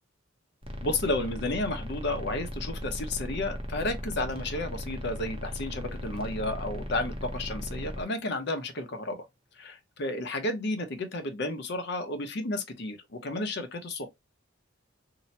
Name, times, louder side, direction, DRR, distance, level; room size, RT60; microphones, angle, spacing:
sound 1, 0.6-8.0, equal, 30° right, 0.6 m, -37 dB
voice 1, 0.8-9.3 9.6-14.1, left 2 dB, 55° left, 0.7 m, -32 dB
2.8 x 2.1 x 2.7 m
head